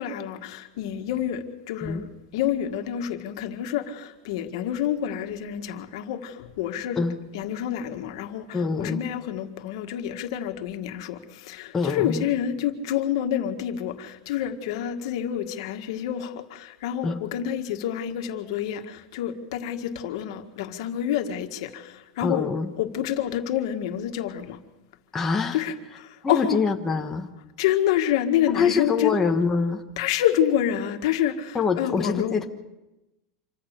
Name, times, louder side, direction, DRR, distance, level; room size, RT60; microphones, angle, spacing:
voice 1, 0.0-7.0 7.3-22.5 22.8-24.6 25.5-26.6 27.6-29.2 30.0-32.4, left 10 dB, 70° left, 5 dB, 1.8 m, -28 dB
voice 2, 8.5-9.0 11.7-12.3 17.0-17.2 22.2-22.7 25.1-25.6 26.2-27.3 28.5-29.8 31.5-32.4, left 5 dB, 10° left, 2 dB, 1.2 m, -25 dB
26.5 x 15.0 x 6.7 m, 0.98 s
supercardioid pair, 150°, 3 cm